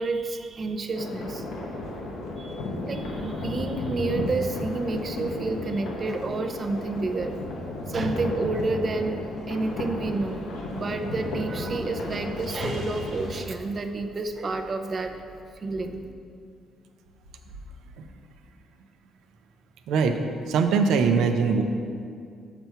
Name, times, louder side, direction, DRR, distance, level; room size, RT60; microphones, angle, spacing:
voice 1, 0.0-1.4 2.4-7.4 7.9-10.4 10.7-15.2 15.6-16.0, right 3 dB, 35° right, 6 dB, 0.5 m, -30 dB
sound 1, 0.9-13.5, left 2 dB, 85° left, 1.0 m, -33 dB
voice 2, 19.9-20.2 20.5-21.6, right 5 dB, 80° right, 6 dB, 0.6 m, -21 dB
6.8 x 4.5 x 5.6 m, 2.3 s
cardioid pair, 120°, 0 cm